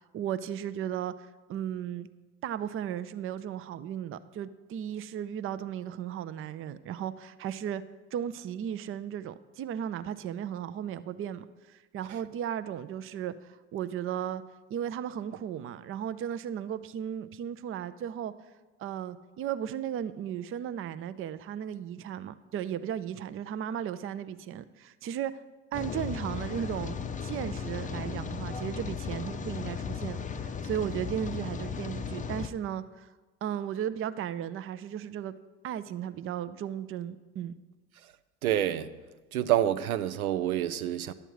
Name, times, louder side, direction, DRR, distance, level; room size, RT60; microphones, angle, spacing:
voice 1, 0.1-1.1 1.5-2.1 2.4-7.8 8.1-14.4 14.7-18.3 18.8-25.4 25.7-33.1 33.4-35.3 35.6-37.6, right 9 dB, 30° right, 0.5 m, -35 dB
Rain, 25.7-32.5, left 6 dB, 20° left, 0.6 m, -36 dB
voice 2, 38.4-38.9 39.3-41.1, right 11 dB, 80° right, 0.6 m, -27 dB
11.0 x 7.7 x 4.7 m
figure-of-eight pair, 60°, 43 cm